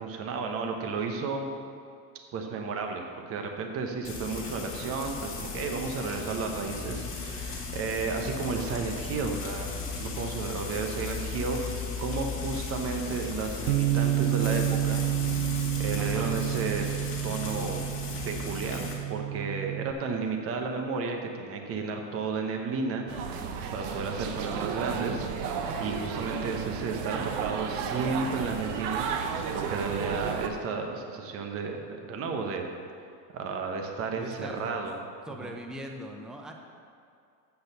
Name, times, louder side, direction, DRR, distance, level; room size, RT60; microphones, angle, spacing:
voice 1, 0.0-1.5 2.3-15.0 15.8-16.9 17.2-17.8 18.2-23.1 23.7-25.3 25.8-29.1 29.5-32.7 33.3-35.0 35.4-35.5, right 4 dB, 30° right, 3 dB, 1.0 m, -33 dB
Frying (food), 4.0-18.9, left 4 dB, 25° left, 1.9 m, -36 dB
Bass guitar, 13.7-19.9, right 12 dB, 70° right, 0.7 m, -29 dB
voice 2, 16.0-16.4 34.1-34.6 35.3-36.5, right 1 dB, ahead, 2 dB, 0.5 m, -40 dB
sound 1, 23.1-30.5, right 6 dB, 55° right, 1.0 m, -33 dB
8.1 x 6.4 x 6.7 m, 2.4 s
supercardioid pair, 130°, 46 cm